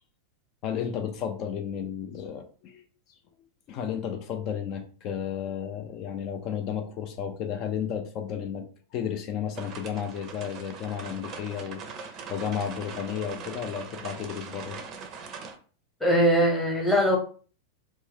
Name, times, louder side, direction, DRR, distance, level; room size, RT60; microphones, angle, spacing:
voice 1, 0.6-2.8 3.7-14.9, left 8 dB, 40° left, 6 dB, 0.4 m, -33 dB
sound 1, 9.6-15.6, right 5 dB, 35° right, 0.5 m, -41 dB
voice 2, 16.0-17.2, equal, 5° left, 0 dB, 0.9 m, -21 dB
2.5 x 2.1 x 3.4 m, 0.40 s
figure-of-eight pair, 90°, 0 cm